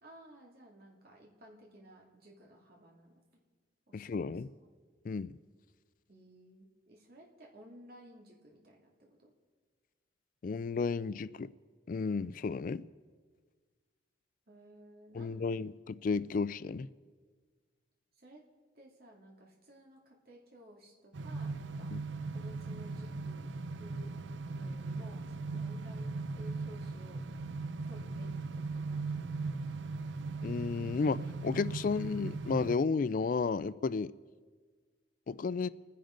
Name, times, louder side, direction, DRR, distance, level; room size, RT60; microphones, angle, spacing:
voice 1, 0.0-3.2 3.9-4.7 6.1-9.3 14.5-15.4 18.2-18.4 18.7-21.9 22.3-24.1 24.5-27.2 27.8-29.3, equal, 55° right, 2.5 m, -56 dB
voice 2, 3.9-4.5 5.0-5.4 10.4-11.5 11.9-12.9 15.1-16.9 21.9-22.0 30.4-34.1 35.3-35.7, left 4 dB, 45° left, 0.3 m, -33 dB
sound 1, 21.1-32.8, right 3 dB, 80° right, 0.5 m, -39 dB
28.0 x 10.5 x 3.8 m
head